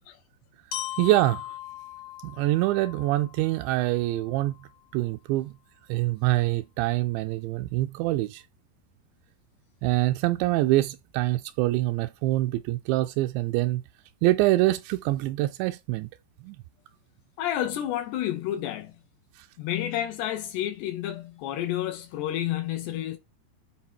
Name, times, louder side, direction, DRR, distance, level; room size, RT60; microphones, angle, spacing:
Glockenspiel, 0.7-4.7, left 12 dB, 60° left, 1.9 m, -39 dB
voice 1, 1.0-1.5 2.2-4.6 4.9-5.5 5.9-8.4 9.8-13.8 14.2-16.1 16.4-16.6, right 17 dB, 85° right, 2.7 m, -25 dB
voice 2, 17.4-19.0 19.6-23.2, left 12 dB, 75° left, 2.6 m, -30 dB
9.4 x 4.0 x 4.4 m
omnidirectional pair, 5.3 m